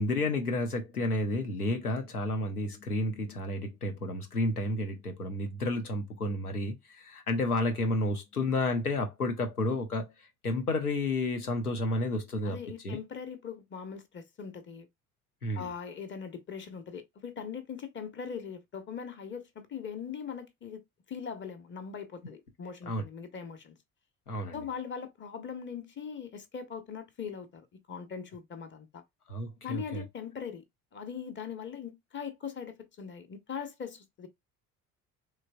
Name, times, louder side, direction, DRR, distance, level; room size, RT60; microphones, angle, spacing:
voice 1, 0.0-12.6 12.8-13.0 15.4-15.7 22.3-22.4 22.9-23.0 24.3-24.6 29.3-30.0, left 2 dB, 85° left, 0.7 m, -31 dB
voice 2, 12.4-14.9 15.5-20.8 21.1-23.7 24.5-29.0 29.6-30.6 30.9-34.3, left 7 dB, 25° left, 0.8 m, -41 dB
3.9 x 3.1 x 2.2 m
figure-of-eight pair, 55°, 44 cm